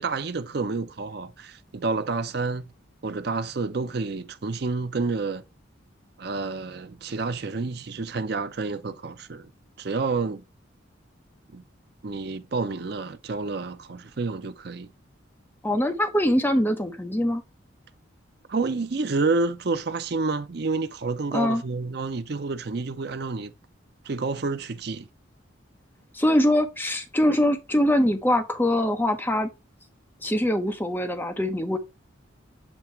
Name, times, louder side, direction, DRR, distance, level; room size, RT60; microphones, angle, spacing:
voice 1, 0.0-2.7 3.0-5.4 6.2-9.5 9.8-10.4 11.5-11.6 12.0-14.9 18.5-23.5 24.0-25.1, right 3 dB, 55° right, 0.5 m, -29 dB
voice 2, 15.6-17.4 21.3-21.6 26.1-29.5 30.2-31.8, left 1 dB, 10° left, 0.8 m, -23 dB
7.3 x 2.9 x 4.4 m
head